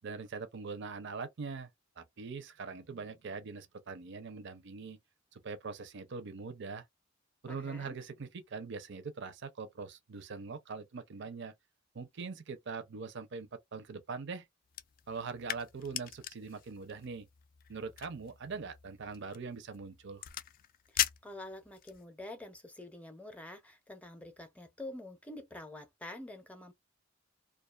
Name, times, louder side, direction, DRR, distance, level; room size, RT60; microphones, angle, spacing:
voice 1, 0.0-1.7 2.0-5.0 5.3-6.8 7.4-11.5 11.9-14.5 15.1-17.3 17.7-20.3, right 4 dB, 60° right, 0.5 m, -42 dB
voice 2, 7.5-8.0 20.9-26.7, left 1 dB, 5° left, 0.6 m, -47 dB
sound 1, 14.7-22.0, left 11 dB, 45° left, 0.3 m, -41 dB
2.4 x 2.3 x 2.3 m
head